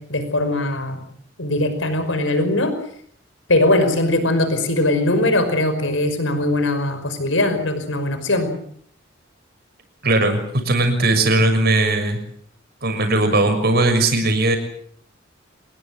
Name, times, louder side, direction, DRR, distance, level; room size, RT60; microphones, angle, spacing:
voice 1, 0.1-1.0 1.4-2.7 3.5-8.5, left 1 dB, 80° left, 10 dB, 5.6 m, -20 dB
voice 2, 10.0-10.4 10.6-12.2 12.8-14.6, right 2 dB, 55° right, 7 dB, 6.6 m, -18 dB
26.5 x 21.5 x 7.6 m, 0.63 s
head